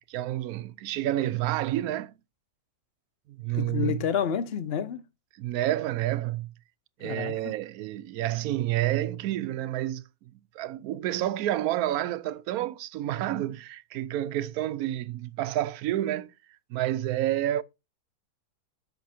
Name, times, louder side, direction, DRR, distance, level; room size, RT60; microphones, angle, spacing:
voice 1, 0.1-2.1 3.3-4.0 5.4-6.5 7.0-10.0 10.5-16.3 16.7-17.6, right 13 dB, 70° right, 1.0 m, -29 dB
voice 2, 3.5-5.0 7.0-7.5, left 7 dB, 45° left, 0.9 m, -29 dB
8.3 x 6.3 x 4.3 m
omnidirectional pair, 1.8 m